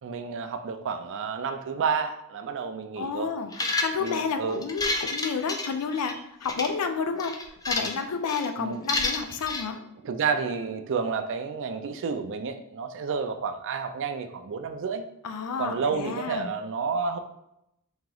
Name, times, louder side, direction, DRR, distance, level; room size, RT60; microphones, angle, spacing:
voice 1, 0.0-3.3 4.0-4.7 8.6-8.8 10.0-15.0 15.6-17.2, right 5 dB, 60° right, 8 dB, 0.4 m, -30 dB
voice 2, 3.0-7.3 7.7-9.8 15.2-16.5, left 5 dB, 85° left, 7 dB, 0.4 m, -31 dB
sound 1, 3.5-4.2 4.6-6.1 6.4-6.7 7.2-8.0 8.3-8.5 8.9-9.6, left 3 dB, 15° left, 0.3 m, -29 dB
3.0 x 2.9 x 3.8 m, 0.81 s
head